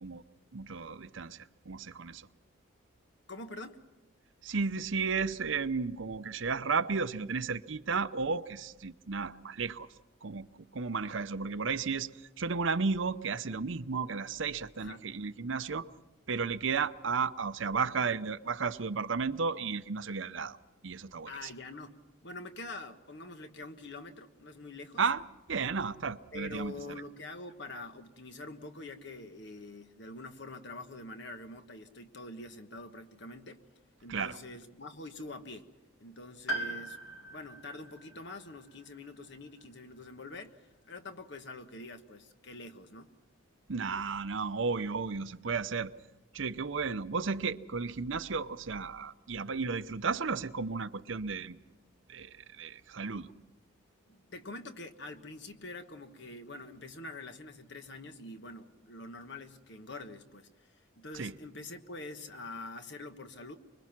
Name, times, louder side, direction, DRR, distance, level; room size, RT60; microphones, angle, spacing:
voice 1, 0.5-2.3 4.4-9.9 10.2-10.5 10.7-12.1 12.4-15.9 16.3-20.6 20.8-21.5 25.0-25.2 25.5-26.7 34.1-34.4 43.7-45.9 46.3-51.6 52.1-53.3 61.1-61.3, right 5 dB, 70° right, 0.7 m, -33 dB
voice 2, 3.3-3.8 14.8-15.0 21.3-25.0 26.3-33.6 34.0-35.7 36.0-37.0 37.3-43.1 54.1-63.6, left 2 dB, 60° left, 1.4 m, -45 dB
Piano, 36.5-40.4 40.6-40.7 41.9-42.0, right 1 dB, 85° left, 2.4 m, -41 dB
25.5 x 22.5 x 6.0 m
head